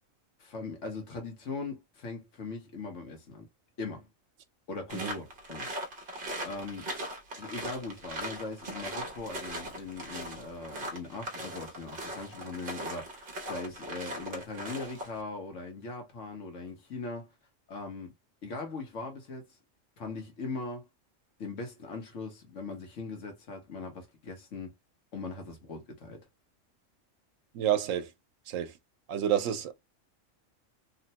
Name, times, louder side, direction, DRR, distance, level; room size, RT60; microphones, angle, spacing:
voice 1, 0.4-3.5 3.8-4.1 4.7-5.7 6.1-6.2 6.4-6.9 7.4-17.3 17.7-18.1 18.4-19.5 20.0-20.9 21.4-24.7 25.1-26.2, left 3 dB, 70° left, 1.3 m, -40 dB
sound 1, 4.9-15.2, right 1 dB, 45° right, 0.9 m, -39 dB
voice 2, 27.5-28.1 28.5-28.7 29.1-29.7, right 10 dB, 90° right, 1.0 m, -29 dB
3.1 x 2.1 x 2.8 m
omnidirectional pair, 1.3 m